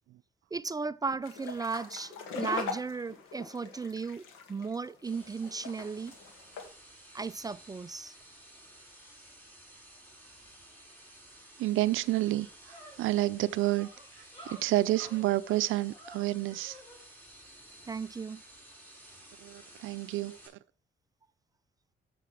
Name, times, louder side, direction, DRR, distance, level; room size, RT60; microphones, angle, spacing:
voice 1, 0.5-6.1 7.1-8.2 17.9-18.4, right 4 dB, 20° right, 0.3 m, -36 dB
sound 1, 1.2-6.7, left 5 dB, 85° left, 1.7 m, -41 dB
sound 2, 5.0-20.5, right 1 dB, 10° left, 5.6 m, -54 dB
sound 3, 11.6-11.7 12.0-17.0, equal, 25° left, 3.4 m, -52 dB
voice 2, 11.6-12.5 13.0-13.9 14.6-16.8 19.4-20.4, right 16 dB, 85° right, 0.5 m, -29 dB
7.6 x 6.1 x 4.8 m
cardioid pair, 90°, 20 cm